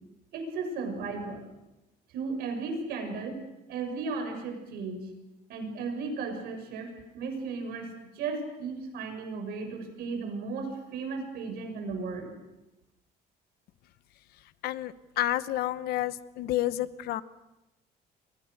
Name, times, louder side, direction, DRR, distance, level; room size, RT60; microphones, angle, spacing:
voice 1, 0.3-1.4 2.1-3.4 3.7-5.1 5.5-12.3, right 4 dB, 75° right, 4 dB, 6.8 m, -35 dB
voice 2, 14.6-17.2, left 14 dB, 75° left, 15 dB, 1.1 m, -30 dB
29.5 x 23.5 x 6.7 m, 0.97 s
cardioid pair, 175°, 16 cm